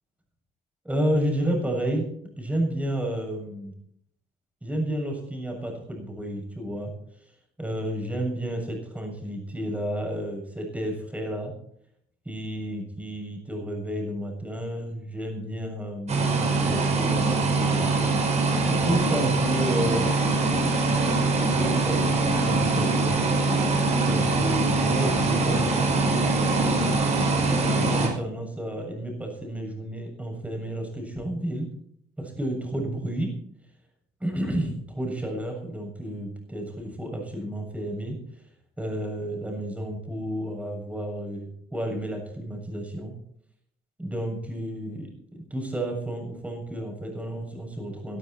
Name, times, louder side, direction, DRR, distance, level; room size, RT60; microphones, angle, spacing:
voice 1, 0.8-2.1 2.4-3.8 4.6-6.9 7.2-7.3 7.6-11.5 12.3-18.4 18.7-20.5 21.5-23.3 24.0-26.9 27.5-31.7 32.2-33.4 34.2-38.2 38.8-43.1 44.0-48.2, right 1 dB, 10° right, 2 dB, 7.2 m, -31 dB
sound 1, 16.1-28.1, right 3 dB, 40° right, 5.8 m, -23 dB
20.0 x 12.5 x 4.4 m, 0.67 s
cardioid pair, 110°, 17 cm